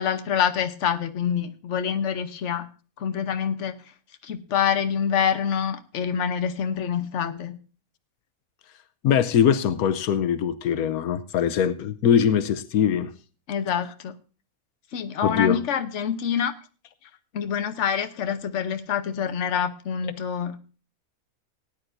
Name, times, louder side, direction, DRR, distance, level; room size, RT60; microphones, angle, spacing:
voice 1, 0.0-2.7 3.0-3.9 4.2-7.6 13.5-14.1 14.9-16.5 17.3-20.6, left 8 dB, 60° left, 1.2 m, -26 dB
voice 2, 9.0-13.1 15.2-15.6, left 8 dB, 90° left, 1.2 m, -22 dB
18.5 x 10.0 x 2.6 m
omnidirectional pair, 1.5 m